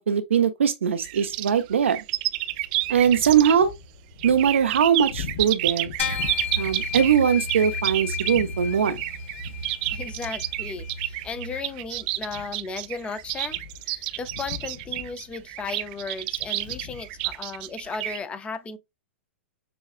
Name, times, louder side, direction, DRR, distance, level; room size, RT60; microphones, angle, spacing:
voice 1, 0.0-2.0 2.9-3.7 4.2-5.9 6.6-9.0, right 8 dB, 85° right, 0.6 m, -21 dB
sound 1, 1.0-3.8 4.2-18.2, right 18 dB, 45° right, 0.3 m, -30 dB
sound 2, 2.5-17.4, left 8 dB, 65° left, 0.8 m, -43 dB
sound 3, 6.0-11.6, left 4 dB, 80° left, 1.8 m, -32 dB
voice 2, 9.9-13.6 13.8-18.8, left 4 dB, 15° left, 0.5 m, -35 dB
6.8 x 2.3 x 2.5 m
hypercardioid pair, 125°, 7 cm